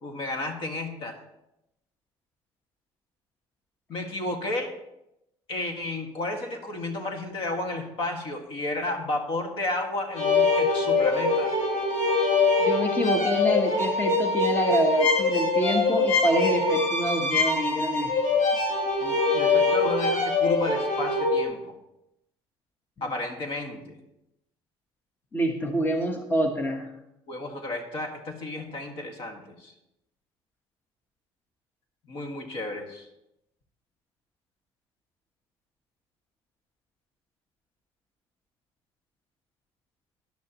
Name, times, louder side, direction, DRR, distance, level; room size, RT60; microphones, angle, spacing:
voice 1, 0.0-1.2 3.9-4.7 5.5-11.6 19.0-21.8 23.0-24.0 27.3-29.7 32.1-33.1, left 2 dB, 55° left, 4 dB, 1.8 m, -32 dB
sound 1, 10.2-21.4, left 3 dB, 85° left, 3.5 m, -23 dB
voice 2, 12.6-18.1 25.3-26.9, equal, 20° left, 3 dB, 1.2 m, -26 dB
13.5 x 10.5 x 3.0 m, 0.86 s
cardioid pair, 110°, 10 cm